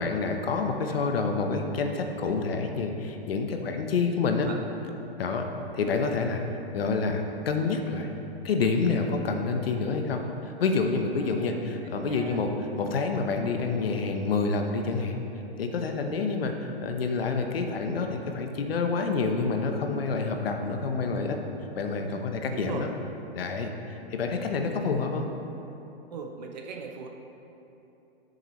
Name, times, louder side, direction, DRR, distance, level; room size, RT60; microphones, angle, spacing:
voice 1, 0.0-4.5 5.2-5.5 5.7-6.4 6.7-8.2 8.4-15.2 15.6-21.4 21.8-22.9 23.3-25.2, left 4 dB, 65° left, 4 dB, 1.0 m, -28 dB
voice 2, 11.2-12.4 22.1-22.9 26.1-27.1, right 5 dB, 40° right, 3 dB, 0.8 m, -41 dB
13.0 x 6.7 x 3.1 m, 3.0 s
hypercardioid pair, 165°, 32 cm